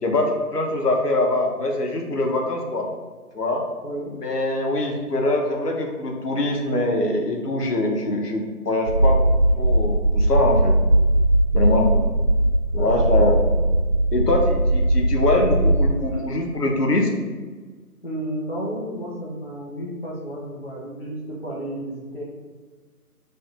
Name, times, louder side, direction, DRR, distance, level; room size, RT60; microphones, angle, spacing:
voice 1, 0.0-2.9 3.3-3.6 4.1-10.7 11.5-11.9 12.7-13.4 14.1-17.1, left 1 dB, 80° left, 1 dB, 0.8 m, -23 dB
sound 1, 8.9-15.9, right 1 dB, 20° left, 1.0 m, -19 dB
voice 2, 13.3-13.6 16.1-16.5 18.0-22.2, right 1 dB, 40° left, -5 dB, 0.4 m, -32 dB
4.3 x 2.5 x 2.4 m, 1.4 s
figure-of-eight pair, 160°, 47 cm